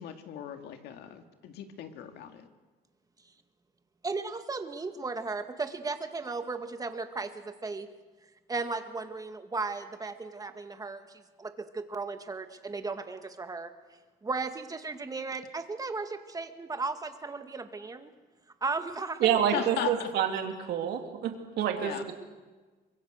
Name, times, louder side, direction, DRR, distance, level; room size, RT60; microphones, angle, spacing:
voice 1, 0.0-2.5 19.5-20.1 21.8-22.0, left 9 dB, 75° left, 6 dB, 2.1 m, -37 dB
voice 2, 4.0-7.9 8.5-13.7 14.2-18.1 18.6-19.4, right 3 dB, 20° right, 7 dB, 1.9 m, -35 dB
voice 3, 19.2-22.1, right 9 dB, 75° right, 4 dB, 2.8 m, -28 dB
24.5 x 22.5 x 6.5 m, 1.3 s
cardioid pair, 110°, 17 cm